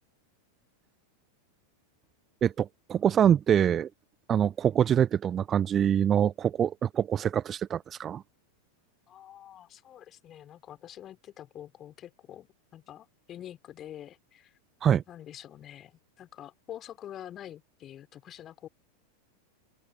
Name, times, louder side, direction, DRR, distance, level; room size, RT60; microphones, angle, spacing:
voice 1, 2.4-3.9 4.3-8.2 14.8-15.0, right 9 dB, 25° right, 0.7 m, -25 dB
voice 2, 9.1-14.5 15.1-18.7, left 11 dB, 30° left, 3.9 m, -46 dB
open air
figure-of-eight pair, 90°, 0 cm